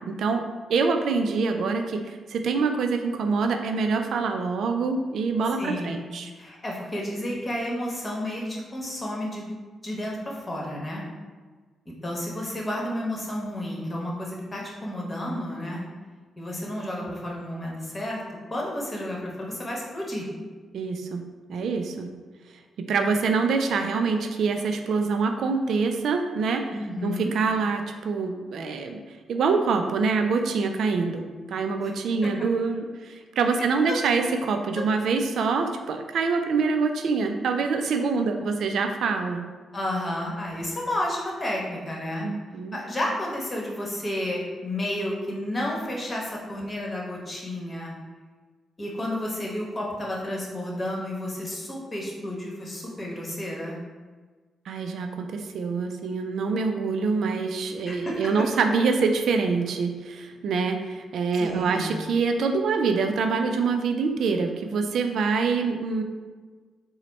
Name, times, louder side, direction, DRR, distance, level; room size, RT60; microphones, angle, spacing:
voice 1, 0.1-0.4 0.7-6.3 20.7-21.2 21.5-22.1 22.9-26.7 27.0-29.0 29.3-39.4 42.2-42.8 54.7-66.0, right 4 dB, 70° right, 6 dB, 0.3 m, -25 dB
voice 2, 5.6-5.9 6.3-9.5 9.8-11.0 12.0-15.8 16.4-18.2 18.5-20.3 26.7-27.3 32.2-32.5 33.9-34.0 34.7-34.9 39.7-42.3 42.7-47.9 48.8-53.8 57.9-58.3 61.3-61.9, left 1 dB, 30° left, -2 dB, 1.2 m, -31 dB
4.0 x 2.1 x 4.2 m, 1.4 s
supercardioid pair, 50°, 0 cm